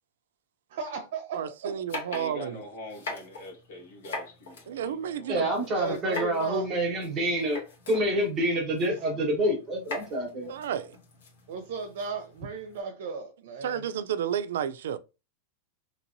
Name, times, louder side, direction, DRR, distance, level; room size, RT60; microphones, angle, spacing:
voice 1, 0.7-1.7 2.0-2.1 5.7-6.7 8.9-9.0 11.5-13.8, right 5 dB, 60° right, 0.7 m, -35 dB
voice 2, 1.3-2.6 4.7-5.5 10.5-11.0 13.6-15.0, right 9 dB, 90° right, 0.3 m, -31 dB
sound 1, 1.9-12.8, left 3 dB, 85° left, 1.4 m, -43 dB
voice 3, 2.1-5.7, left 1 dB, 65° left, 1.4 m, -44 dB
voice 4, 5.3-7.6 7.9-10.5, right 1 dB, 15° right, 1.0 m, -27 dB
3.0 x 2.9 x 2.6 m
supercardioid pair, 175°, 0 cm